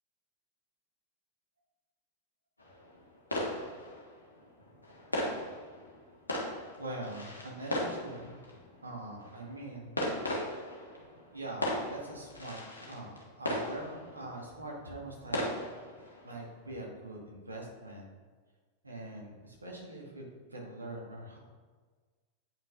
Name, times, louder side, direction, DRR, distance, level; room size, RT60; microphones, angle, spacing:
sound 1, 2.6-16.7, left 1 dB, 80° left, 1.2 m, -38 dB
voice 1, 6.8-9.9 11.3-15.4 16.2-18.1 18.8-20.2 20.5-21.4, right 2 dB, 80° right, -1 dB, 1.3 m, -43 dB
9.0 x 5.4 x 2.4 m, 1.4 s
figure-of-eight pair, 90°, 0 cm